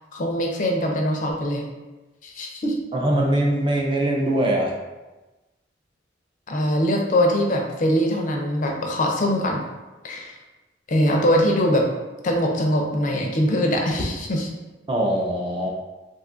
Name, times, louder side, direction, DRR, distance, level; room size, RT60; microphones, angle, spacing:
voice 1, 0.1-1.6 2.2-2.8 6.5-9.6 10.0-10.4 10.9-11.9 12.2-14.5, equal, 45° left, 1 dB, 0.4 m, -22 dB
voice 2, 2.9-4.7 14.9-15.7, right 1 dB, 25° right, -1 dB, 0.4 m, -22 dB
2.6 x 2.4 x 3.7 m, 1.1 s
head